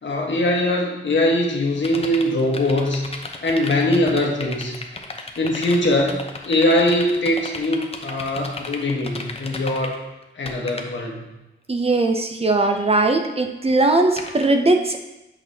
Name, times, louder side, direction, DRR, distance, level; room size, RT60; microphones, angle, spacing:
voice 1, 0.0-3.1 3.4-4.8 5.4-10.0 10.4-11.3, left 1 dB, 65° left, -1 dB, 1.2 m, -21 dB
sound 1, 1.8-10.0 10.2-10.9 14.2-14.5, left 3 dB, 30° left, 0.7 m, -34 dB
voice 2, 11.7-15.0, right 2 dB, 30° right, 4 dB, 0.5 m, -19 dB
8.3 x 6.0 x 2.7 m, 0.98 s
wide cardioid pair, 125°, 21 cm